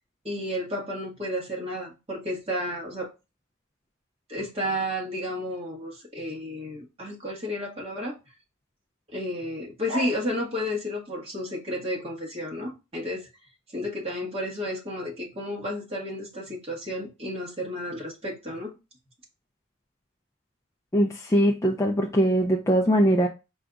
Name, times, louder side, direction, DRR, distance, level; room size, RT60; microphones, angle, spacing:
voice 1, 0.2-3.1 4.3-8.1 9.1-13.3 13.7-18.7, equal, 25° right, 1.5 m, -32 dB
voice 2, 20.9-23.3, equal, 15° left, 0.3 m, -21 dB
4.8 x 2.3 x 3.8 m
head